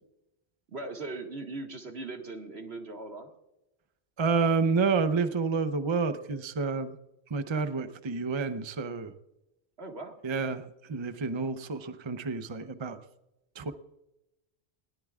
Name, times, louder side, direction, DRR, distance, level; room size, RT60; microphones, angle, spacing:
voice 1, 0.7-3.3 9.8-10.2, right 2 dB, 70° right, 3 dB, 2.0 m, -39 dB
voice 2, 4.2-6.9 7.3-9.1 10.2-10.6 10.9-13.0 13.6-13.7, right 4 dB, 30° right, 9 dB, 0.7 m, -29 dB
20.5 x 17.5 x 2.4 m, 0.93 s
omnidirectional pair, 1.1 m